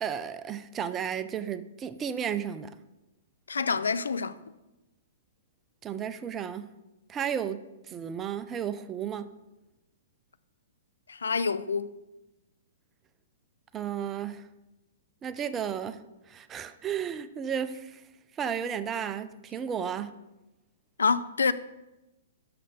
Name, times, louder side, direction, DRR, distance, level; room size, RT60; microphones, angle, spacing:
voice 1, 0.0-2.8 5.8-6.7 7.1-9.3 13.7-14.4 15.2-18.0 18.4-20.1, right 8 dB, 20° right, 0.4 m, -33 dB
voice 2, 3.5-4.4 11.1-11.9 21.0-21.5, left 5 dB, 70° left, 0.3 m, -27 dB
6.3 x 5.8 x 5.1 m
figure-of-eight pair, 115°, 0 cm